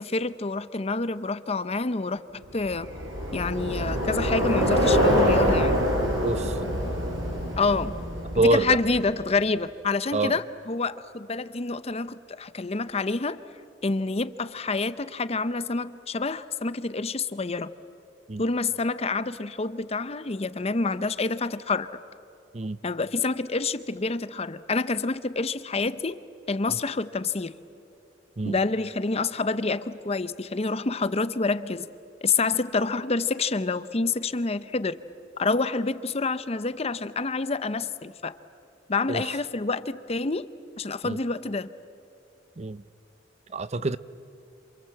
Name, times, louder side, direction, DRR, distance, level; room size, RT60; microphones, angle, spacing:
voice 1, 0.0-2.2 2.5-2.9 3.3-5.8 7.6-8.0 8.3-13.4 13.8-17.7 18.4-21.9 22.8-26.2 26.5-27.5 28.4-31.9 32.2-35.0 35.4-38.4 38.9-40.5 40.8-41.7, left 3 dB, 30° left, 14 dB, 0.7 m, -27 dB
Bicycle, 2.6-9.1, equal, 90° right, 5.5 m, -25 dB
voice 2, 6.2-6.6 8.3-8.8 10.1-10.4 18.3-18.4 22.5-22.8 26.7-26.8 28.4-28.6 39.1-39.2 41.0-41.2 42.6-42.8 43.5-44.0, right 2 dB, 35° right, 15 dB, 0.6 m, -25 dB
27.5 x 27.5 x 7.7 m, 2.6 s
head